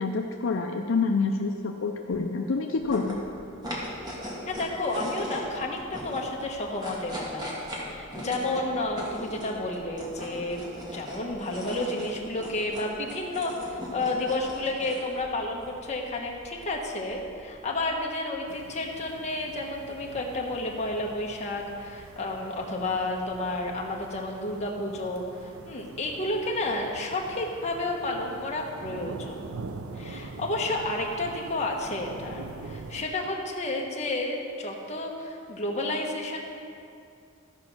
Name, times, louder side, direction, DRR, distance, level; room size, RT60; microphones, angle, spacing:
voice 1, 0.0-3.2, left 4 dB, 60° left, 2 dB, 0.5 m, -27 dB
sound 1, 2.8-18.1, equal, 20° right, 1.7 m, -40 dB
voice 2, 4.5-7.5 7.9-10.7 10.9-29.5 30.0-36.4, left 2 dB, 30° left, 0 dB, 1.2 m, -31 dB
sound 2, 18.5-33.1, right 3 dB, 75° right, 0.6 m, -44 dB
13.5 x 5.2 x 6.0 m, 2.5 s
head